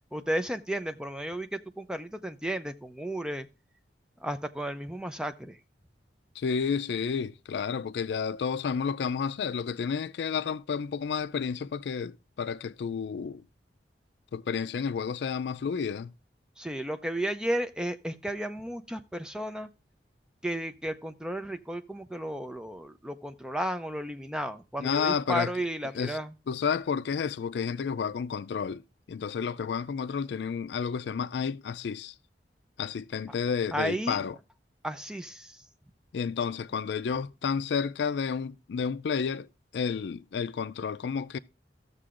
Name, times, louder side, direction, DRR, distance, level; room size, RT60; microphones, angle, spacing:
voice 1, 0.1-3.5 4.2-5.6 16.6-19.7 20.4-26.3 33.7-34.3 34.8-35.6, right 1 dB, 5° right, 0.4 m, -33 dB
voice 2, 6.4-13.4 14.3-16.1 24.8-25.5 25.9-26.2 26.5-28.8 29.1-32.1 32.8-34.3 36.1-39.5 39.7-41.4, left 6 dB, 75° left, 0.4 m, -31 dB
14.5 x 6.7 x 2.5 m
head